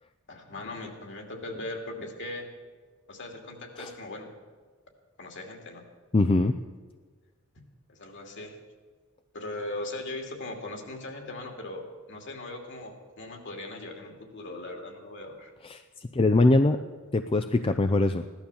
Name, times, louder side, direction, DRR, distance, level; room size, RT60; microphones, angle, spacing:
voice 1, 0.3-2.5 3.1-4.3 5.2-5.8 7.9-8.6 9.3-15.5, left 2 dB, 60° left, 3 dB, 2.6 m, -39 dB
voice 2, 6.1-6.6 15.6-15.8 16.1-16.8 17.1-18.2, left 2 dB, 25° left, 8 dB, 0.5 m, -22 dB
16.0 x 12.0 x 7.1 m, 1.5 s
head